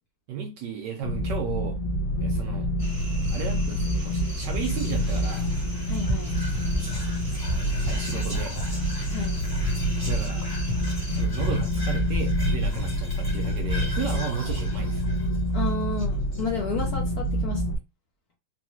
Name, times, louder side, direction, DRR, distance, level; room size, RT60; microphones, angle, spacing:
voice 1, 0.3-1.8 2.2-2.7 3.3-5.5 7.8-8.6 10.0-10.5 11.1-15.0, right 7 dB, 75° right, 1.0 m, -34 dB
sound 1, 1.0-17.8, equal, 85° left, 1.5 m, -27 dB
sound 2, 2.8-11.2, equal, 20° right, 1.1 m, -39 dB
Whispering, 4.3-16.8, right 1 dB, 15° left, 0.9 m, -35 dB
voice 2, 5.9-6.4 9.1-9.4 15.5-17.6, left 4 dB, 65° left, 1.0 m, -31 dB
3.9 x 2.2 x 3.0 m
omnidirectional pair, 2.3 m